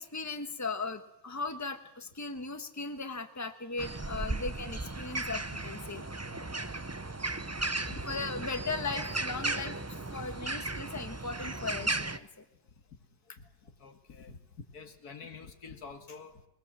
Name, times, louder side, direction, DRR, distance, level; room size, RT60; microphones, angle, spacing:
voice 1, 0.0-6.0 8.0-12.4, left 3 dB, 10° left, 7 dB, 1.3 m, -38 dB
sound 1, 3.8-12.2, right 2 dB, 20° right, 0.4 m, -36 dB
voice 2, 7.6-8.0 13.6-14.4 14.7-16.5, left 5 dB, 85° left, 6 dB, 2.4 m, -48 dB
22.0 x 21.5 x 7.5 m, 0.85 s
omnidirectional pair, 1.6 m